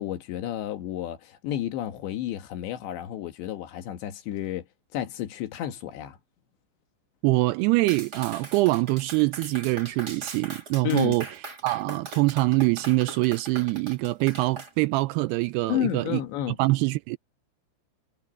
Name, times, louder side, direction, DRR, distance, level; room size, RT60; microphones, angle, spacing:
voice 1, 0.0-4.7 4.9-6.2 10.8-11.2 15.7-16.6, left 12 dB, 75° left, 3.7 m, -31 dB
voice 2, 7.2-11.2 11.6-16.2 16.6-17.2, right 21 dB, 90° right, 2.3 m, -24 dB
Clapping, 7.9-14.7, right 3 dB, 25° right, 2.8 m, -41 dB
omnidirectional pair, 5.3 m